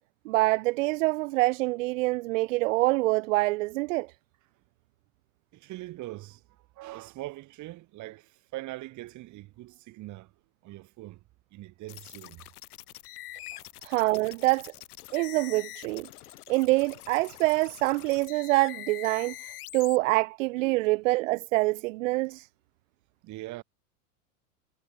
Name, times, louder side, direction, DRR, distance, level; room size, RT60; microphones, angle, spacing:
voice 1, 0.3-4.1 13.8-14.7 15.1-16.1 16.5-19.3 19.7-22.5, right 22 dB, 60° right, 0.5 m, -25 dB
voice 2, 5.5-11.2 11.5-12.5 13.5-13.7 20.6-20.8 23.2-23.6, right 18 dB, 40° right, 6.4 m, -42 dB
sound 1, 11.9-20.0, left 16 dB, 80° left, 0.8 m, -45 dB
hypercardioid pair, 125°, 45 cm